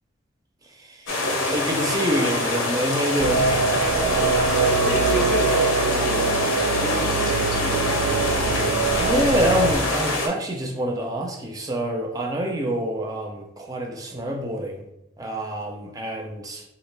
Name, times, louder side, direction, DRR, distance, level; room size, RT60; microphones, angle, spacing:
voice 1, 0.8-1.1 1.5-3.7 9.0-14.9 15.2-16.6, equal, 20° right, 2 dB, 0.4 m, -26 dB
sound 1, 1.1-10.3, left 2 dB, 85° left, 0.8 m, -25 dB
sound 2, 3.2-9.7, right 4 dB, 85° right, 0.4 m, -23 dB
voice 2, 4.8-8.6, left 2 dB, 45° left, 5 dB, 0.4 m, -32 dB
3.9 x 2.4 x 3.2 m, 0.86 s
head